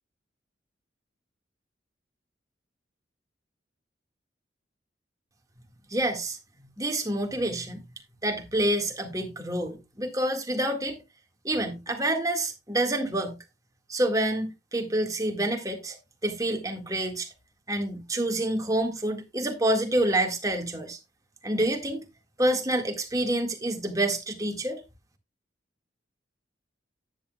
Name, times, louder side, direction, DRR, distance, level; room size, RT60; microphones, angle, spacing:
voice 1, 5.9-6.4 6.8-7.8 8.2-11.0 11.4-13.4 13.9-16.0 16.2-17.3 17.7-21.0 21.4-22.1 22.4-24.8, right 1 dB, 20° right, 1.8 m, -27 dB
11.0 x 9.9 x 2.3 m
head